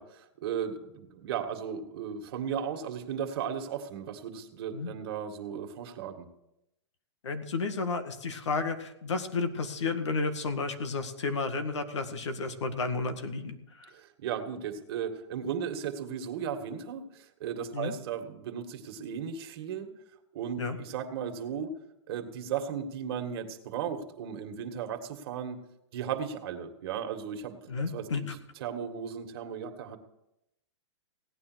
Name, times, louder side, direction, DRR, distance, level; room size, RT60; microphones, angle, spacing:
voice 1, 0.0-6.3 13.9-19.9 20.3-21.7 22.1-25.6 25.9-28.3 28.6-30.0, right 8 dB, 55° right, 5 dB, 2.0 m, -36 dB
voice 2, 7.2-13.9 17.7-17.9 20.6-20.8 27.7-28.3, left 4 dB, 85° left, 7 dB, 1.9 m, -32 dB
17.0 x 9.7 x 6.3 m, 0.86 s
hypercardioid pair, 135°, 15 cm